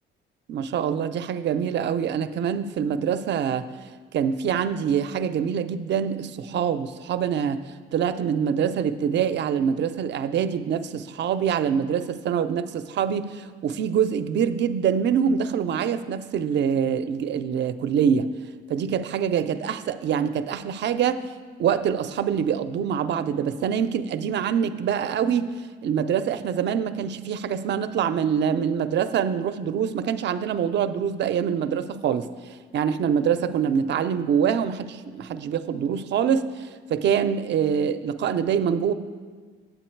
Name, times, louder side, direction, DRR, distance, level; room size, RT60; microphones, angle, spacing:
voice 1, 0.5-3.7 4.1-7.6 7.9-18.3 18.7-21.2 21.6-25.5 25.8-32.3 32.7-38.9, right 8 dB, 65° right, 11 dB, 0.5 m, -25 dB
9.0 x 7.8 x 4.5 m, 1.5 s
cardioid pair, 90°, 20 cm